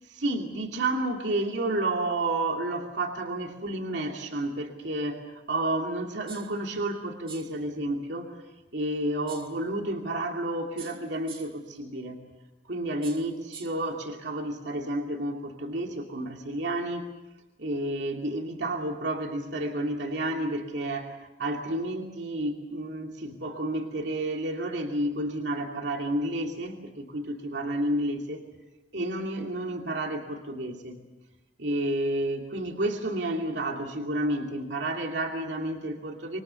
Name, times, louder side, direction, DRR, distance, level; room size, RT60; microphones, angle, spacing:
voice 1, 0.1-8.3 8.7-12.2 12.7-17.0 17.6-28.4 28.9-31.0 31.6-36.4, right 1 dB, 70° right, 2 dB, 2.7 m, -31 dB
sound 1, 6.3-6.6 7.3-7.6 9.3-9.6 10.8-11.7 13.0-13.9, right 6 dB, 30° right, 1.8 m, -46 dB
26.5 x 24.0 x 7.0 m, 1.1 s
head